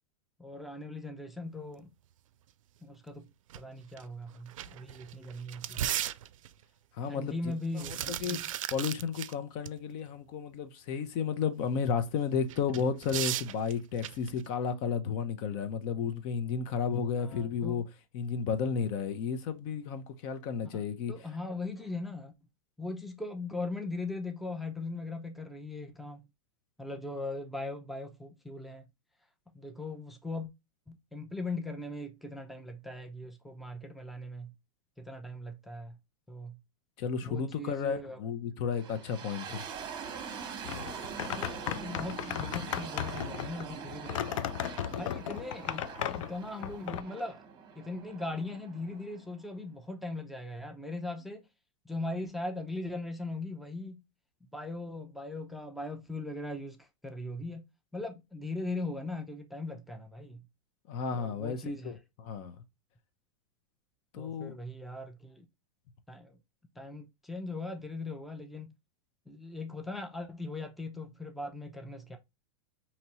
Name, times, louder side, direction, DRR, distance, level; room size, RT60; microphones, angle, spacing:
voice 1, 0.4-1.9 2.8-3.3 3.6-5.9 7.1-8.4 17.2-17.8 20.7-20.8 21.1-22.3 22.8-26.2 26.8-28.9 29.5-30.5 30.9-34.5 35.0-36.0 36.3-36.6 37.2-38.2 41.3-44.3 44.8-47.4 47.8-51.5 51.9-54.0 54.5-57.7 57.9-60.4 61.1-62.0 64.2-65.5 66.1-66.4 66.8-68.7 69.3-72.2, left 2 dB, ahead, 0.5 m, -39 dB
sound 1, 3.5-3.6 4.0-4.1 4.5-6.6 7.5-9.3 9.7-9.8 12.5-14.4, right 12 dB, 85° right, 0.4 m, -36 dB
voice 2, 7.0-7.3 7.7-8.4 8.7-17.8 18.1-21.1 37.0-39.6 60.9-62.0 62.2-62.6 64.1-64.6, left 6 dB, 50° left, 0.7 m, -33 dB
sound 2, 38.7-49.6, right 6 dB, 25° right, 1.0 m, -43 dB
sound 3, 40.6-47.0, left 10 dB, 80° left, 0.4 m, -36 dB
4.2 x 2.9 x 2.8 m
hypercardioid pair, 125°, 16 cm